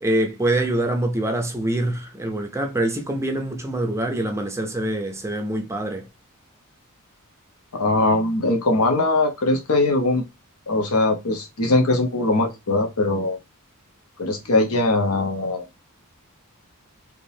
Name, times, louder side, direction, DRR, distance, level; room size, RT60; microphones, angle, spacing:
voice 1, 0.0-6.1, right 1 dB, 10° right, 0.5 m, -25 dB
voice 2, 7.7-10.2 10.7-13.4 14.2-15.6, left 2 dB, 75° left, 0.9 m, -21 dB
3.7 x 2.9 x 2.7 m
head